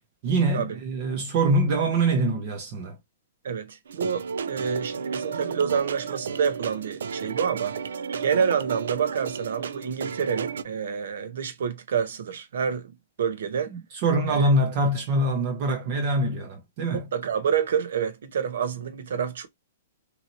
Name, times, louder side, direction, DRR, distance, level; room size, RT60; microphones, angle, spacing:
voice 1, 0.2-3.0 14.0-17.1, right 2 dB, 35° right, 0.7 m, -24 dB
voice 2, 3.4-7.8 8.2-13.7 14.3-14.5 16.9-19.5, right 7 dB, 70° right, 0.8 m, -28 dB
sound 1, 3.9-10.6, right 6 dB, 85° right, 0.3 m, -33 dB
2.9 x 2.8 x 2.7 m
hypercardioid pair, 170°, 0 cm